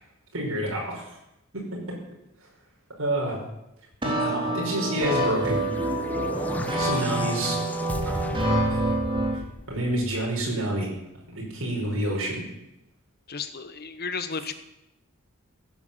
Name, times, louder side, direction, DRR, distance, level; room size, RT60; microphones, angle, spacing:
voice 1, 0.3-1.1 1.5-1.8 3.0-3.4 4.0-5.6 6.8-7.6 8.0-8.2 8.7-8.8 9.7-10.9 11.3-12.4, right 1 dB, 70° right, -3 dB, 5.2 m, -28 dB
sound 1, 4.0-9.4, right 1 dB, 25° right, 3.0 m, -27 dB
sound 2, 5.0-10.4, left 1 dB, 10° left, 1.1 m, -35 dB
voice 2, 13.3-14.5, left 5 dB, 50° left, 10 dB, 1.2 m, -33 dB
16.5 x 9.3 x 7.4 m, 0.88 s
head